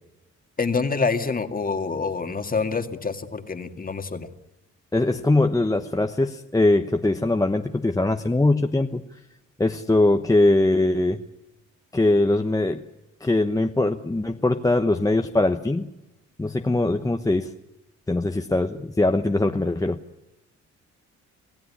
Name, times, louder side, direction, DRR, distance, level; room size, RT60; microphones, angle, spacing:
voice 1, 0.6-4.3, left 4 dB, 30° left, 7 dB, 2.1 m, -26 dB
voice 2, 4.9-9.0 9.6-11.2 11.9-12.8 13.2-15.9 16.4-17.5 18.1-20.0, left 2 dB, 10° left, 5 dB, 1.0 m, -21 dB
26.0 x 16.0 x 9.9 m, 0.93 s
cardioid pair, 90°, 30 cm